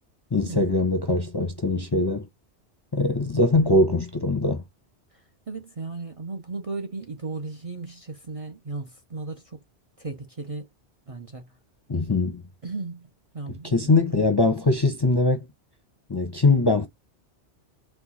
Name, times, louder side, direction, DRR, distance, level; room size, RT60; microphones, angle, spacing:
voice 1, 0.3-2.3 2.9-4.6 11.9-12.4 13.6-15.5 16.1-16.9, left 2 dB, 30° left, 0.6 m, -22 dB
voice 2, 5.5-9.6 10.0-10.7 11.1-11.5 12.6-14.1, right 3 dB, 40° right, 0.6 m, -35 dB
4.5 x 2.3 x 4.0 m
omnidirectional pair, 1.2 m